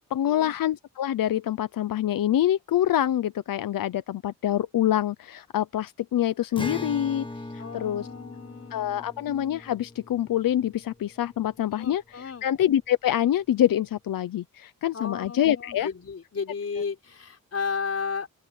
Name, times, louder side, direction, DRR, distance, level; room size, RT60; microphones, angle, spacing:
voice 1, 0.1-7.3 7.5-8.1 8.7-15.9, left 11 dB, 90° left, 0.8 m, -26 dB
Acoustic guitar, 6.5-12.0, left 2 dB, 15° left, 1.8 m, -40 dB
voice 2, 7.6-9.1 11.7-12.5 14.9-18.3, left 5 dB, 45° left, 4.8 m, -34 dB
open air
wide cardioid pair, 110°, 33 cm